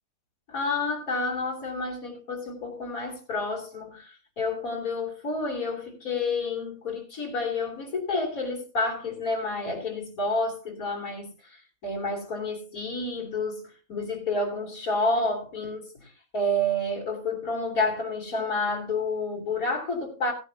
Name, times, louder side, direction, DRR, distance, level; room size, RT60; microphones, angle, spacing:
voice 1, 0.5-20.3, left 2 dB, 65° left, 3.8 m, -29 dB
17.5 x 9.8 x 2.8 m
omnidirectional pair, 1.6 m